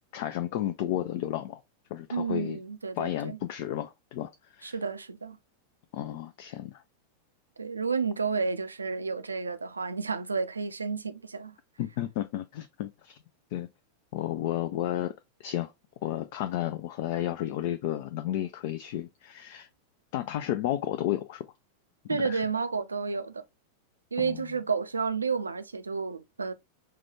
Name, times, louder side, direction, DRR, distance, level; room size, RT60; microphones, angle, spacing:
voice 1, 0.0-1.6 1.9-2.6 3.0-4.8 5.9-6.8 11.8-13.2 13.5-13.7 14.1-15.1 15.4-15.7 16.0-19.7 20.1-21.5 22.1-22.4 24.2-24.5, left 12 dB, 50° left, 0.3 m, -32 dB
voice 2, 2.1-3.4 4.6-5.4 7.6-11.5 22.1-23.4 24.1-26.5, right 5 dB, 75° right, 0.4 m, -31 dB
4.7 x 2.2 x 3.0 m
figure-of-eight pair, 90°, 0 cm